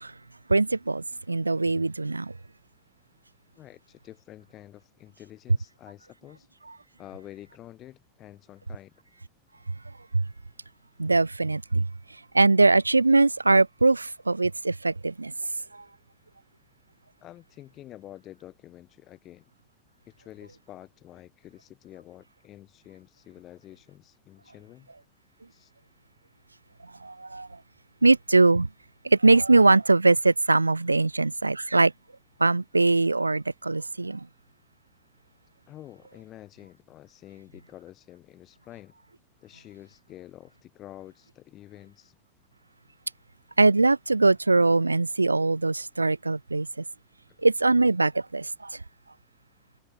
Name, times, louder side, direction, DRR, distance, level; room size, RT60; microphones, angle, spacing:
voice 1, 0.5-2.3 10.1-10.2 11.0-11.9 12.3-15.3 15.7-15.8 27.0-27.6 28.0-28.7 29.0-31.9 32.4-34.3 43.6-46.8 47.4-48.8, right 3 dB, 80° right, 0.3 m, -22 dB
voice 2, 3.6-6.5 7.0-8.9 17.2-19.4 20.1-24.9 25.5-25.7 35.7-38.9 39.4-42.2, left 13 dB, 35° left, 2.1 m, -48 dB
figure-of-eight pair, 90°, 0 cm